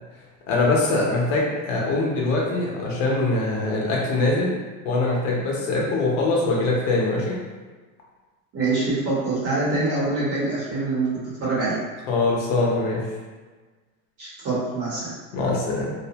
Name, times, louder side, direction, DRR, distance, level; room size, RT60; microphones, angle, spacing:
voice 1, 0.5-4.6 4.8-7.4 12.1-13.0 15.3-15.9, left 2 dB, 60° left, -3 dB, 0.8 m, -23 dB
voice 2, 8.5-11.1 11.4-11.7 14.2-15.1, right 3 dB, 30° right, -8 dB, 1.1 m, -24 dB
2.5 x 2.1 x 2.8 m, 1.3 s
supercardioid pair, 140°, 44 cm